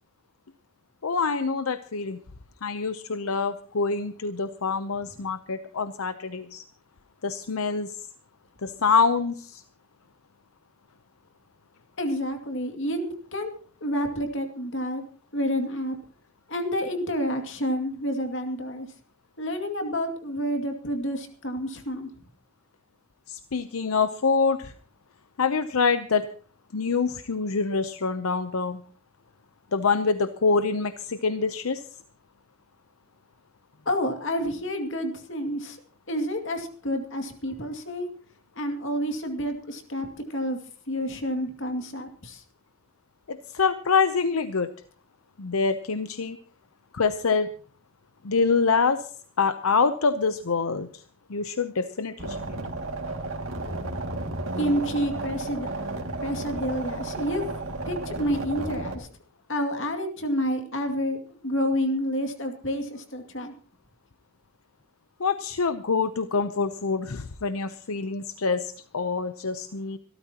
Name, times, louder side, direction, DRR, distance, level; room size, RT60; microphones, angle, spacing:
voice 1, 1.0-2.2 2.6-6.6 7.2-7.9 8.6-9.6 23.3-24.7 25.4-26.3 26.7-28.8 29.7-31.8 43.3-44.7 45.4-46.4 46.9-47.5 48.2-49.1 49.4-50.9 51.3-52.4 65.2-70.0, left 4 dB, 85° left, 10 dB, 0.8 m, -25 dB
voice 2, 12.0-13.5 13.8-15.0 15.3-16.0 16.5-18.9 19.4-22.1 33.9-35.8 36.1-38.1 38.5-40.6 40.9-42.4 54.6-55.7 56.2-57.4 57.8-59.1 59.5-61.2 61.4-63.5, equal, 60° left, 5 dB, 2.4 m, -29 dB
sound 1, 52.2-59.0, right 2 dB, 70° right, 2.3 m, -33 dB
26.0 x 13.0 x 2.9 m, 0.43 s
head